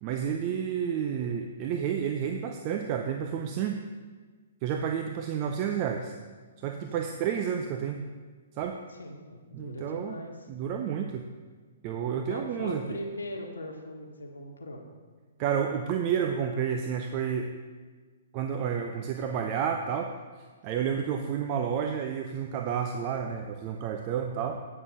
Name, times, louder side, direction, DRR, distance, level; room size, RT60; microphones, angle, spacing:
voice 1, 0.0-3.8 4.6-6.1 6.6-8.0 8.5-8.8 9.5-10.2 10.5-11.2 11.8-13.0 15.4-17.5 18.3-20.1 20.6-24.6, right 8 dB, 30° right, 4 dB, 0.6 m, -30 dB
voice 2, 8.9-10.3 12.3-14.8, left 1 dB, 70° left, 2 dB, 1.3 m, -40 dB
8.7 x 6.7 x 6.4 m, 1.5 s
figure-of-eight pair, 120°, 0 cm